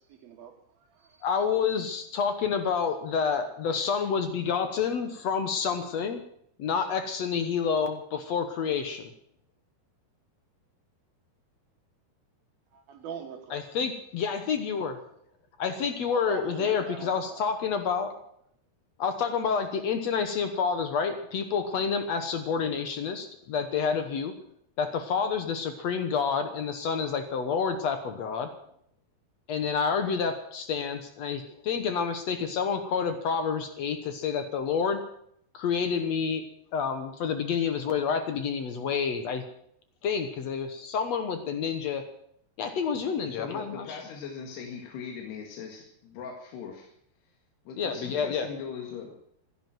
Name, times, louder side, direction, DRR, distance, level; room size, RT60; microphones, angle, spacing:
voice 1, 0.1-0.6 1.0-1.2 12.7-13.7 16.1-17.4, right 7 dB, 70° right, 3.1 m, -42 dB
voice 2, 1.2-6.2 6.6-9.1 13.5-15.0 15.6-18.1 19.0-24.3 24.8-28.5 29.5-35.0 35.5-36.4 36.7-39.4 40.0-42.1 42.6-44.0 47.8-48.5, left 6 dB, 70° left, 1.6 m, -29 dB
voice 3, 43.3-46.9 47.7-49.1, left 6 dB, 85° left, 4.0 m, -40 dB
15.5 x 11.5 x 7.7 m
omnidirectional pair, 4.7 m